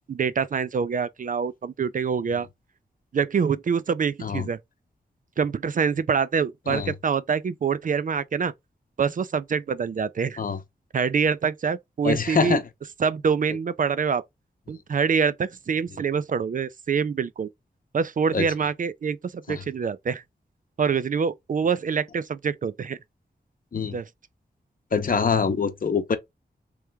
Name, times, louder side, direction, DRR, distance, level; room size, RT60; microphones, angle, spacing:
voice 1, 0.1-2.5 3.1-4.6 5.4-8.5 9.0-10.4 10.9-12.6 13.0-14.2 14.7-17.5 17.9-20.2 20.8-23.0 23.9-24.1, right 6 dB, 50° right, 0.4 m, -25 dB
voice 2, 12.0-12.6 18.3-18.5 19.5-19.6 23.7-24.0 24.9-26.2, left 5 dB, 55° left, 0.8 m, -24 dB
3.4 x 3.2 x 3.3 m
wide cardioid pair, 100°, 17 cm